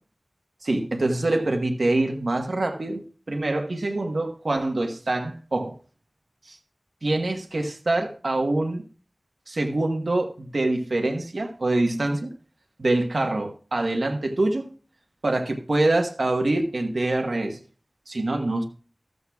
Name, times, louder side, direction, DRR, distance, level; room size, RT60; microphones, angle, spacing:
voice 1, 0.6-5.7 6.5-6.6 7.0-8.8 9.5-12.3 12.8-14.7 15.2-17.6 18.1-18.6, right 2 dB, 85° right, 3 dB, 1.2 m, -25 dB
14.5 x 13.0 x 2.3 m, 0.39 s
wide cardioid pair, 60°, 0 cm